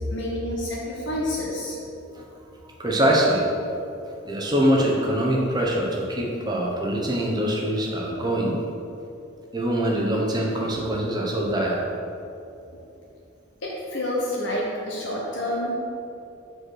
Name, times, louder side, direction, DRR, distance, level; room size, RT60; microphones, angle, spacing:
voice 1, 0.1-1.8 13.6-15.7, left 1 dB, 60° left, -4 dB, 1.0 m, -28 dB
voice 2, 2.8-3.5 4.2-8.6 9.5-11.8, right 1 dB, 20° right, -2 dB, 0.9 m, -23 dB
5.2 x 4.7 x 6.3 m, 2.7 s
head